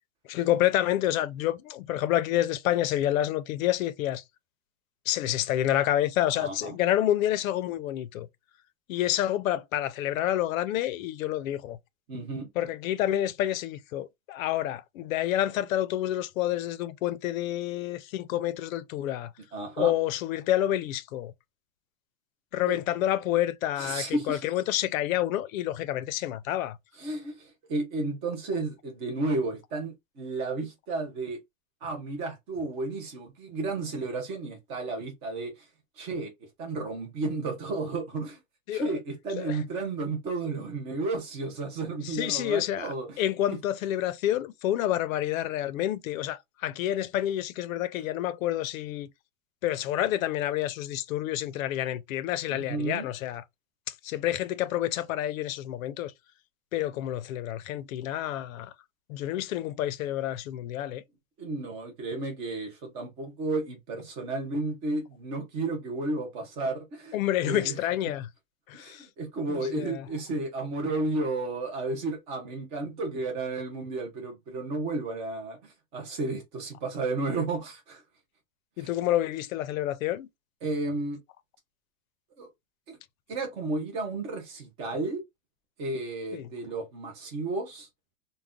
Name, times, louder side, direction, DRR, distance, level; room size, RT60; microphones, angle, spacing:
voice 1, 0.3-4.2 5.1-8.3 8.9-11.8 12.6-19.3 19.8-21.3 22.5-26.8 38.7-38.9 39.4-39.6 42.0-49.1 49.6-53.4 54.0-56.1 56.7-58.7 59.1-61.0 67.1-68.3 68.7-69.1 69.5-70.1 78.8-80.3 86.3-86.5, left 13 dB, 85° left, 0.5 m, -28 dB
voice 2, 6.3-6.8 12.1-12.5 19.5-19.9 22.7-22.8 23.8-24.4 27.0-31.4 31.8-35.7 36.0-36.3 36.6-38.4 38.7-43.2 43.5-43.6 48.0-48.1 52.5-53.1 61.4-67.8 68.7-78.0 78.8-78.9 80.6-81.2 82.4-82.5 82.9-83.0 83.3-85.2 85.8-87.9, right 2 dB, 15° right, 0.4 m, -32 dB
2.3 x 2.1 x 3.5 m
supercardioid pair, 170°, 40 cm